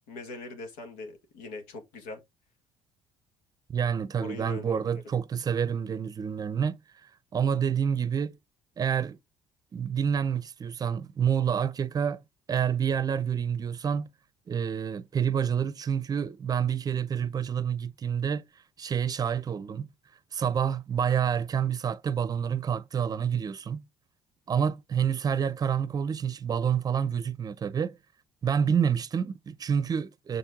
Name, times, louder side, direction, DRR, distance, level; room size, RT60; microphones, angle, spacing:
voice 1, 0.1-2.2 4.2-4.9, left 2 dB, 85° left, 1.9 m, -41 dB
voice 2, 3.7-6.8 7.3-8.3 8.8-9.2 9.7-12.2 12.5-14.1 14.5-18.4 18.8-19.9 20.3-23.8 24.5-28.0 28.4-30.4, right 7 dB, 35° right, 0.6 m, -28 dB
6.6 x 4.5 x 3.7 m
supercardioid pair, 75°, 10 cm